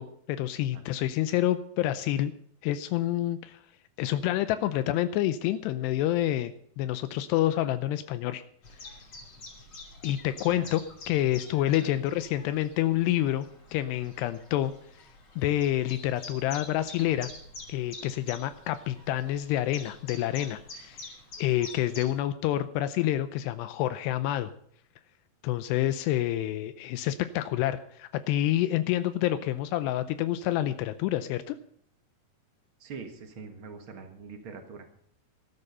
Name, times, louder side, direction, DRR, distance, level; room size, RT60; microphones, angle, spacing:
voice 1, 0.0-2.3 2.6-3.6 4.0-8.4 10.0-13.5 13.7-14.7 15.0-15.1 15.4-17.3 17.7-21.1 21.4-24.5 25.4-31.6, left 13 dB, 85° left, 12 dB, 2.8 m, -28 dB
Chirp tweet, 8.6-22.2, left 3 dB, 30° left, 3.4 m, -47 dB
voice 2, 10.4-10.8 11.8-11.9 32.8-34.9, right 5 dB, 65° right, 6 dB, 1.2 m, -43 dB
13.5 x 13.5 x 5.5 m, 0.65 s
omnidirectional pair, 4.9 m